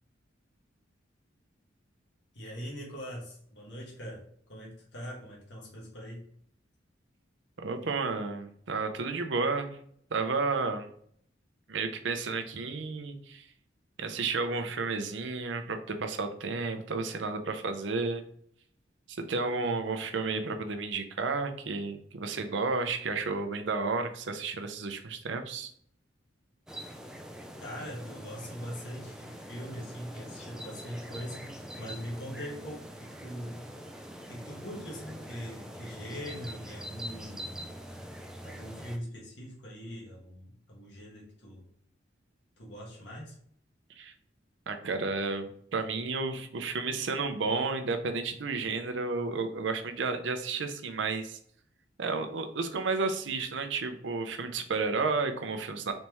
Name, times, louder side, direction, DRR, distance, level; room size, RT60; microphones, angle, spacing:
voice 1, 2.3-6.4 27.6-33.7 34.3-37.6 38.4-41.7 42.6-43.4, equal, 70° left, -3 dB, 1.4 m, -42 dB
voice 2, 7.6-9.8 10.1-10.9 11.7-13.4 14.0-18.2 19.1-25.7 44.0-44.1 44.7-51.4 52.0-55.9, right 4 dB, 75° right, 7 dB, 0.6 m, -32 dB
sound 1, 26.7-39.0, equal, 5° right, 0.3 m, -44 dB
4.1 x 3.4 x 3.0 m, 0.62 s
head